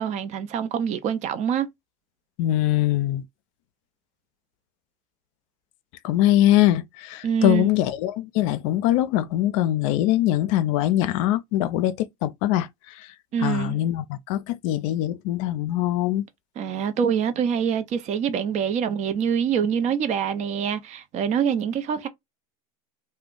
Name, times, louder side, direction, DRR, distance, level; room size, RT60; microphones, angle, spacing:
voice 1, 0.0-1.7 7.2-7.7 13.3-13.8 16.6-22.1, right 7 dB, 40° right, 0.6 m, -25 dB
voice 2, 2.4-3.2 6.0-12.7 12.9-13.1 13.4-16.2, left 14 dB, 60° left, 0.4 m, -22 dB
2.4 x 2.1 x 3.7 m
hypercardioid pair, 90°, 19 cm